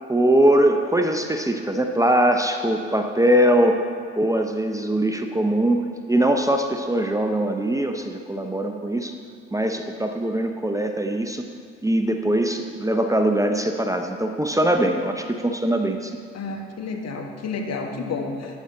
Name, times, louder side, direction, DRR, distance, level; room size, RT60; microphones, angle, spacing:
voice 1, 0.1-3.8 4.2-9.1 9.5-11.5 11.8-16.2, right 1 dB, 10° right, 4 dB, 0.8 m, -21 dB
voice 2, 16.3-18.6, left 4 dB, 50° left, 2 dB, 1.4 m, -30 dB
11.5 x 8.6 x 3.8 m, 2.2 s
hypercardioid pair, 45°, 32 cm